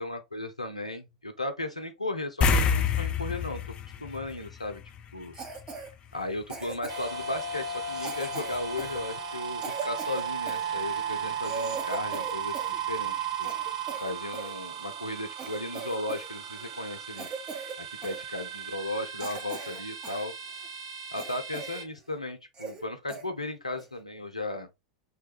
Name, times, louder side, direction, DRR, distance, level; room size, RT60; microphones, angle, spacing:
voice 1, 0.0-3.6 4.0-4.8 5.1-5.3 6.1-13.5 14.0-17.3 17.8-20.3 21.1-24.7, left 2 dB, 85° left, 0.6 m, -35 dB
sound 1, 2.4-5.2 5.5-5.7 8.6-8.7 9.0-9.1, left 5 dB, 30° left, 0.4 m, -27 dB
Cough, 5.3-5.9 6.5-7.2 7.9-10.6 11.1-11.2 11.4-12.8 13.1-14.5 15.0-15.1 15.4-16.3 16.6-16.8 17.2-17.8 18.0-18.2 18.7-18.8 19.2-20.3 20.6-20.7 21.2-21.8 22.1-22.2 22.5-22.8 23.1-23.2 23.8-24.0, right 4 dB, 25° right, 0.9 m, -39 dB
sound 2, 6.9-21.8, right 6 dB, 60° right, 0.8 m, -36 dB
3.3 x 2.3 x 2.9 m
figure-of-eight pair, 90°, 3 cm